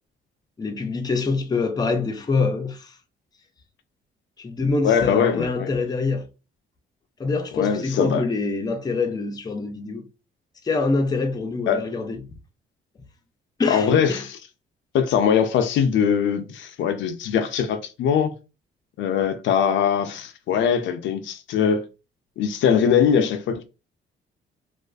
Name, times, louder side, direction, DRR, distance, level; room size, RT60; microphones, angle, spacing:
voice 1, 0.6-2.9 4.4-6.3 7.2-10.0 10.6-12.2 13.6-14.2, left 3 dB, 20° left, 0.4 m, -25 dB
voice 2, 4.8-5.7 7.5-8.2 11.7-11.8 13.7-14.4 14.9-18.3 19.0-21.9 22.4-23.6, left 7 dB, 75° left, 0.4 m, -21 dB
2.4 x 2.4 x 2.3 m
cardioid pair, 90°, 20 cm